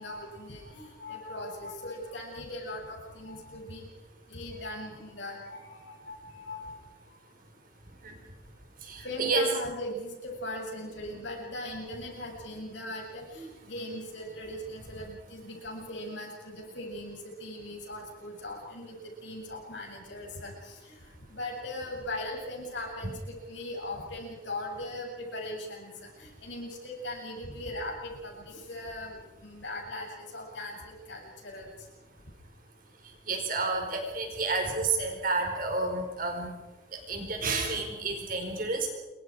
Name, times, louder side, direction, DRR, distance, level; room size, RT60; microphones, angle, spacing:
voice 1, 0.0-3.8 4.3-6.8 9.0-18.9 19.2-20.9 21.3-31.7, left 1 dB, 65° left, 0 dB, 7.8 m, -39 dB
voice 2, 8.8-9.5 33.3-36.5 37.1-38.9, right 3 dB, 45° right, 3 dB, 4.7 m, -30 dB
28.0 x 23.5 x 5.0 m, 1.1 s
head